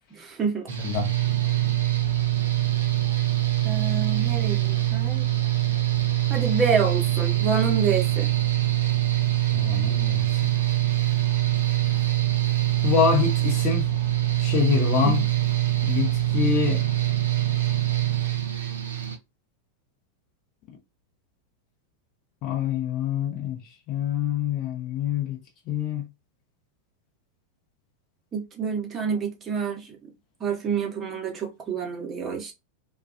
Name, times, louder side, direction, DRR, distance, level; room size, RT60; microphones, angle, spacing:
voice 1, 0.1-0.7 3.6-5.3 6.3-8.3 15.0-15.3 28.3-30.0 30.4-32.5, right 6 dB, 25° right, 0.8 m, -27 dB
Mechanical fan, 0.7-19.2, right 14 dB, 70° right, 0.6 m, -24 dB
voice 2, 9.5-10.5 12.8-13.9 14.4-15.2 15.8-16.8 22.4-23.6 23.9-25.4 25.7-26.0, left 8 dB, 40° left, 0.7 m, -25 dB
2.3 x 2.3 x 2.5 m
figure-of-eight pair, 90°, 0 cm